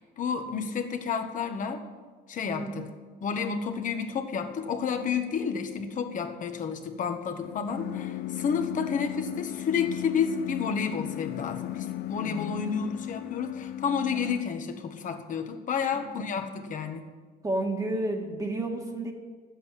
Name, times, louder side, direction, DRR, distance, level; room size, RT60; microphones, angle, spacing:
voice 1, 0.0-1.8 2.3-2.9 3.2-17.1, left 6 dB, 50° left, 6 dB, 1.4 m, -30 dB
voice 2, 2.5-2.8 15.9-16.1 17.4-19.1, right 1 dB, 20° right, 1 dB, 1.7 m, -31 dB
sound 1, 7.4-14.4, left 14 dB, 70° left, 0.4 m, -36 dB
11.5 x 8.0 x 9.9 m, 1.5 s
cardioid pair, 110°, 17 cm